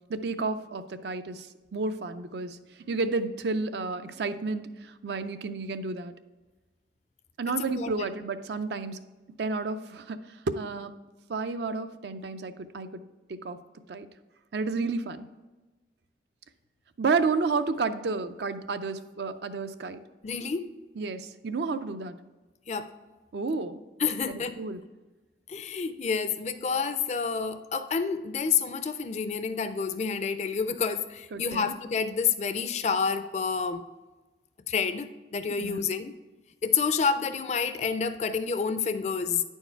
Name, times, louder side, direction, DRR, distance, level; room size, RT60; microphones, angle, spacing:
voice 1, 0.1-2.6 2.9-6.1 7.4-9.0 9.4-10.2 10.5-10.9 11.3-13.0 13.3-13.6 13.9-14.1 14.5-15.3 17.0-20.0 21.0-22.2 23.3-23.8 24.2-24.8 31.3-31.7 35.6-35.9, right 4 dB, 70° right, 0.4 m, -31 dB
voice 2, 7.6-7.9 20.2-20.7 22.7-22.9 24.0-24.5 25.5-33.8 34.7-36.1 36.6-39.4, left 6 dB, 40° left, 0.4 m, -29 dB
9.5 x 4.6 x 4.5 m
head